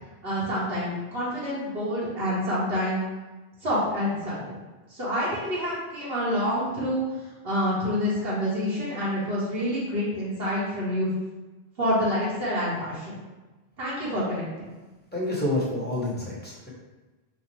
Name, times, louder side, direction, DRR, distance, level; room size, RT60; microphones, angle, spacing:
voice 1, 0.2-3.0 3.6-4.6 4.9-11.1 11.8-13.2 13.8-14.7, equal, 70° right, -8 dB, 1.4 m, -27 dB
voice 2, 15.1-16.7, left 1 dB, 10° left, -6 dB, 1.0 m, -28 dB
5.6 x 2.0 x 3.2 m, 1.2 s
omnidirectional pair, 1.0 m